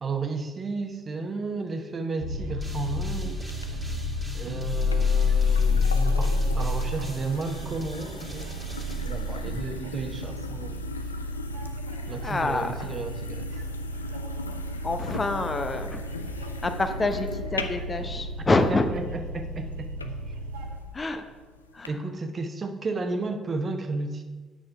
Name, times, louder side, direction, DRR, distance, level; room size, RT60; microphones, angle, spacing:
voice 1, 0.0-3.8 4.3-8.6 9.0-10.8 11.0-11.1 12.1-13.6 18.7-20.3 21.9-24.2, right 3 dB, 35° right, 6 dB, 1.0 m, -33 dB
sound 1, 2.2-20.8, left 3 dB, 70° right, 1.0 m, -30 dB
sound 2, 2.6-9.9, equal, 5° right, 2.1 m, -46 dB
sound 3, 3.5-21.9, left 4 dB, 85° left, 0.4 m, -42 dB
voice 2, 12.2-12.7 14.8-16.0 16.6-18.9 20.9-21.2 21.7-21.9, left 3 dB, 25° left, 8 dB, 0.8 m, -26 dB
8.7 x 6.3 x 5.6 m, 1.3 s
figure-of-eight pair, 50°, 0 cm